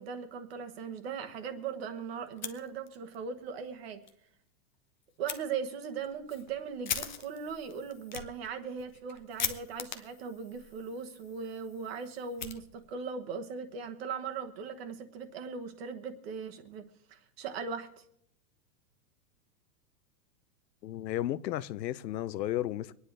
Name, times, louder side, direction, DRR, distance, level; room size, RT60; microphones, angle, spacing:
voice 1, 0.0-4.0 5.2-16.8 17.1-18.0, right 6 dB, 40° right, 1.2 m, -39 dB
Fire, 2.3-3.2 3.5-3.6 4.0-4.1 5.3-5.4 6.0-13.1, left 7 dB, 30° left, 0.4 m, -41 dB
voice 2, 20.8-22.9, left 13 dB, 90° left, 0.8 m, -33 dB
25.0 x 9.7 x 3.4 m
supercardioid pair, 180°, 49 cm